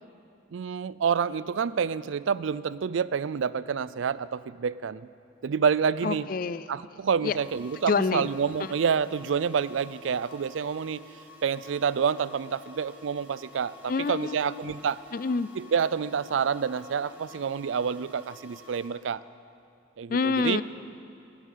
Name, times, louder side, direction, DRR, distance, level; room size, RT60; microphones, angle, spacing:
voice 1, 0.5-5.1 5.4-6.3 6.7-11.1 11.4-15.0 15.6-19.2 20.0-20.6, right 6 dB, 85° right, 17 dB, 0.4 m, -28 dB
voice 2, 6.0-6.7 7.2-7.3 7.9-8.3 8.6-8.7 13.9-14.7 15.1-15.5 20.1-20.6, left 4 dB, 45° left, 16 dB, 0.4 m, -27 dB
sound 1, 7.3-18.9, left 2 dB, 10° right, 1.9 m, -51 dB
12.0 x 11.0 x 9.0 m, 2.4 s
head